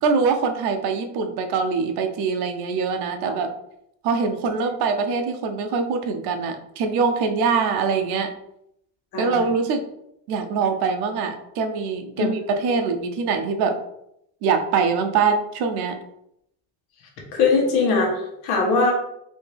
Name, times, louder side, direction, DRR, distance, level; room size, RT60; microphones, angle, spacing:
voice 1, 0.0-3.5 4.0-8.3 9.2-9.8 10.3-13.8 14.4-16.0, right 5 dB, 75° right, 6 dB, 0.7 m, -23 dB
voice 2, 12.2-12.5 17.3-18.9, left 4 dB, 75° left, 0 dB, 1.3 m, -21 dB
4.1 x 2.8 x 3.3 m, 0.78 s
cardioid pair, 165°, 39 cm